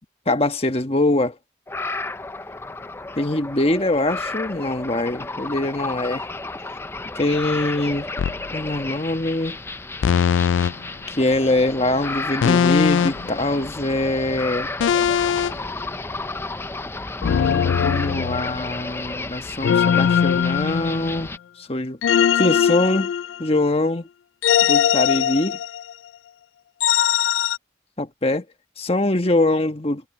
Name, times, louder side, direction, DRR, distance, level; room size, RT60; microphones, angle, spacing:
voice 1, 0.3-1.3 3.2-6.2 7.1-8.1 8.5-9.6 11.1-14.7 17.2-21.3 21.6-23.1 23.4-24.1 24.6-25.6 28.0-28.4 28.8-30.0, left 2 dB, 30° left, 1.4 m, -23 dB
sound 1, 1.7-21.4, left 2 dB, 15° left, 0.5 m, -32 dB
sound 2, 8.2-8.4 10.0-10.7 12.4-13.3 14.8-15.5 17.2-18.7 19.6-21.2 22.0-23.7 24.4-25.9 26.8-27.6, left 8 dB, 85° left, 0.3 m, -20 dB
head